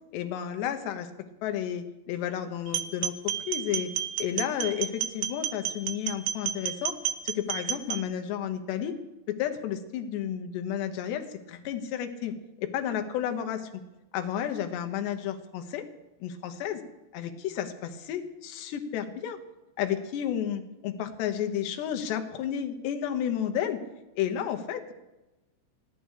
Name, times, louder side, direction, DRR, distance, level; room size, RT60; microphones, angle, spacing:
voice 1, 0.1-1.1 1.4-3.9 4.2-6.9 7.2-9.0 9.3-12.3 12.6-13.7 14.1-15.8 16.2-16.8 17.1-19.4 19.8-23.8 24.2-24.9, left 9 dB, 90° left, 6 dB, 3.3 m, -32 dB
sound 1, 2.7-8.0, right 10 dB, 80° right, 2.5 m, -32 dB
15.5 x 11.5 x 6.5 m, 1.0 s
omnidirectional pair, 4.8 m